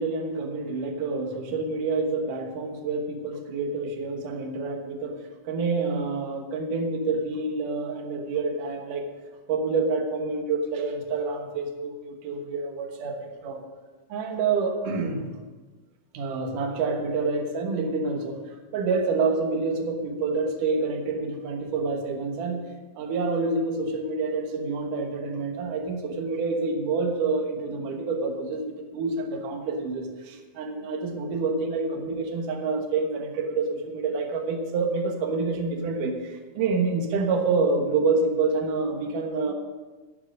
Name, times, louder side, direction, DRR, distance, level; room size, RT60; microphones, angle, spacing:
voice 1, 0.0-5.2 5.5-9.1 9.5-13.6 14.1-15.3 16.1-22.7 23.0-39.5, right 4 dB, 75° right, 3 dB, 2.8 m, -27 dB
12.0 x 10.5 x 5.3 m, 1.3 s
omnidirectional pair, 3.8 m